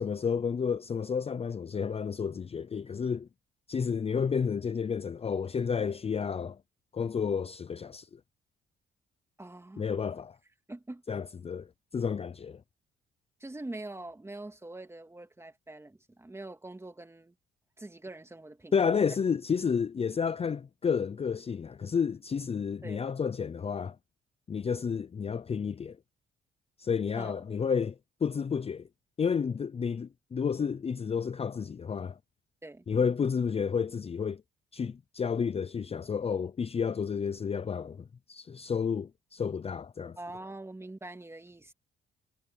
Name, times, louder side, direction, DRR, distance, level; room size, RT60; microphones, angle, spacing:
voice 1, 0.0-3.3 3.7-6.6 6.9-8.2 9.8-10.4 11.1-11.7 11.9-12.6 18.7-24.0 24.5-26.0 26.8-27.9 28.2-28.8 29.2-32.2 32.9-34.4 34.7-40.2, left 6 dB, 30° left, 0.6 m, -31 dB
voice 2, 9.4-9.9 10.7-11.1 13.4-17.3 17.8-18.8 22.8-23.0 27.2-27.4 32.6-32.9 40.2-41.7, right 2 dB, 15° right, 2.7 m, -44 dB
cardioid pair, 90°, 20 cm